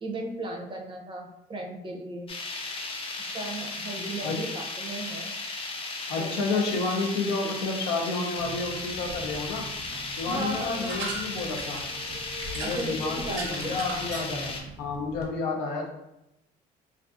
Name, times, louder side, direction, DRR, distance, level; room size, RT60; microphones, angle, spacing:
voice 1, 0.0-2.3 3.3-5.3 6.2-6.6 7.4-7.5 10.3-11.1 12.6-13.8, right 2 dB, 30° right, 1 dB, 0.5 m, -36 dB
sound 1, 2.3-14.6, left 3 dB, 35° left, 0.4 m, -35 dB
voice 2, 6.1-9.7 10.1-11.8 12.5-15.9, left 3 dB, 85° left, 2 dB, 0.6 m, -30 dB
sound 2, 8.4-15.3, right 3 dB, 75° right, 0.6 m, -40 dB
2.4 x 2.3 x 2.4 m, 0.87 s
cardioid pair, 110°, 17 cm